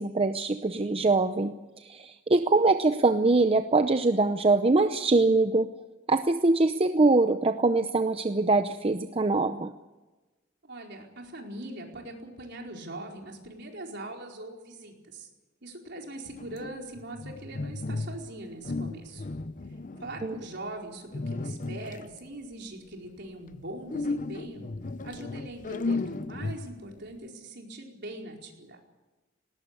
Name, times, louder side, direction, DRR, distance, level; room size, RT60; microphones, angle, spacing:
voice 1, 0.0-5.7 6.1-9.7 20.2-20.3, right 3 dB, 30° right, 9 dB, 0.7 m, -23 dB
voice 2, 10.6-15.3 15.6-19.2 20.0-24.7 25.0-28.8, right 1 dB, 60° right, 1 dB, 4.6 m, -41 dB
sound 1, 16.3-18.3 18.6-20.6 21.1-22.2 23.9-26.9, left 3 dB, 40° left, 0.7 m, -34 dB
19.0 x 19.0 x 8.4 m, 1.2 s
head